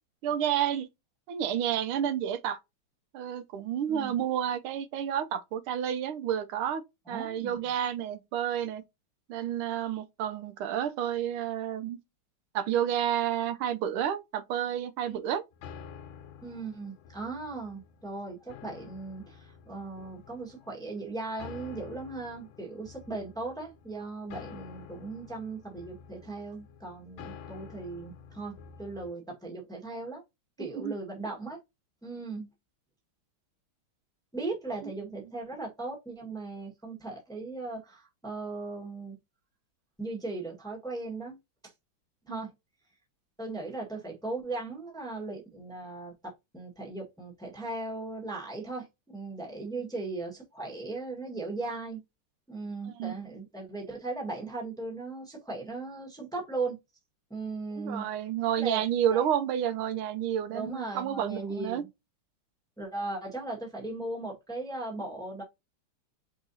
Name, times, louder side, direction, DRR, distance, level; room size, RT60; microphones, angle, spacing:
voice 1, 0.2-0.9 1.3-2.6 3.1-6.8 7.1-8.8 9.3-12.0 12.5-15.4 30.7-30.9 42.3-42.4 52.9-53.1 57.8-61.8, right 10 dB, 90° right, 1.5 m, -30 dB
voice 2, 3.9-4.2 7.1-7.6 15.1-15.2 16.4-30.2 30.6-31.6 32.0-32.5 34.3-39.2 40.0-41.4 41.6-41.7 42.3-42.5 43.4-52.0 52.5-56.8 57.3-58.1 58.6-58.8 59.1-59.2 60.5-61.9 62.8-65.4, right 3 dB, ahead, 1.1 m, -38 dB
sound 1, 15.5-29.1, left 7 dB, 75° left, 1.4 m, -49 dB
4.8 x 3.7 x 2.7 m
omnidirectional pair, 2.3 m